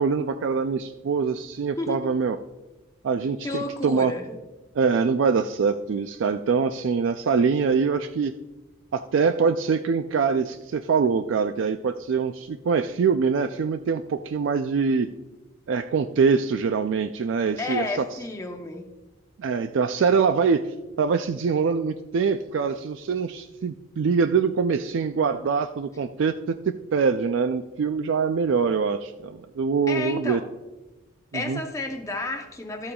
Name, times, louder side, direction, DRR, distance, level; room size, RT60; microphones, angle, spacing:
voice 1, 0.0-2.4 3.0-4.1 4.8-8.3 8.9-15.1 15.7-18.0 19.4-20.6 21.0-26.3 26.9-30.4 31.3-31.6, right 5 dB, 60° right, 0.3 m, -24 dB
voice 2, 1.8-2.2 3.4-4.3 17.6-18.9 29.9-30.4 31.3-32.9, left 2 dB, 15° left, 0.7 m, -31 dB
13.0 x 8.6 x 2.3 m
head